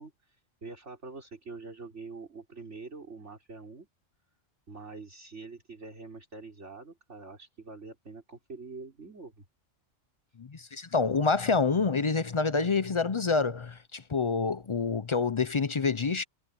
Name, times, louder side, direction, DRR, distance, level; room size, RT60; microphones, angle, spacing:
voice 1, 0.0-3.9 4.7-9.4, right 3 dB, 65° right, 4.8 m, -45 dB
voice 2, 10.4-16.2, left 4 dB, 45° left, 0.4 m, -27 dB
omnidirectional pair, 1.3 m